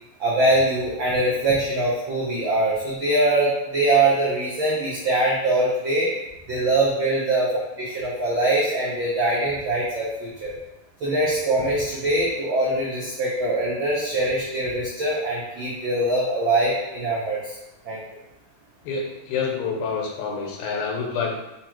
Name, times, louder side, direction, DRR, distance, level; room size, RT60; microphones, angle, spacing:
voice 1, 0.2-6.1 6.5-7.5 7.8-10.5 11.0-17.5 17.8-18.0, right 2 dB, 85° right, -6 dB, 1.0 m, -23 dB
voice 2, 18.8-21.3, left 5 dB, 85° left, 0 dB, 2.3 m, -27 dB
4.9 x 2.4 x 4.4 m, 0.94 s
omnidirectional pair, 3.4 m